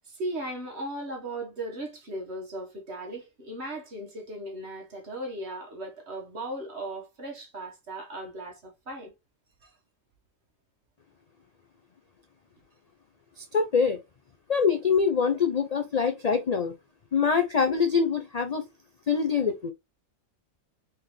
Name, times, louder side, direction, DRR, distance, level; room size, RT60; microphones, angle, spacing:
voice 1, 0.0-9.1 9.6-9.7 17.2-17.3, right 1 dB, 50° right, 1.7 m, -37 dB
voice 2, 13.4-14.0 14.5-16.7 17.1-18.6 19.1-19.7, left 6 dB, 55° left, 0.4 m, -24 dB
4.1 x 3.8 x 3.2 m
omnidirectional pair, 1.4 m